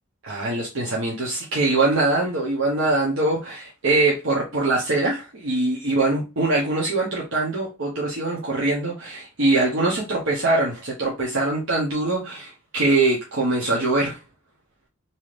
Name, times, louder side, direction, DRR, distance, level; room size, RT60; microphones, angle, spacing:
voice 1, 0.2-14.2, right 2 dB, 65° right, 0.7 m, -23 dB
2.7 x 2.4 x 3.1 m
head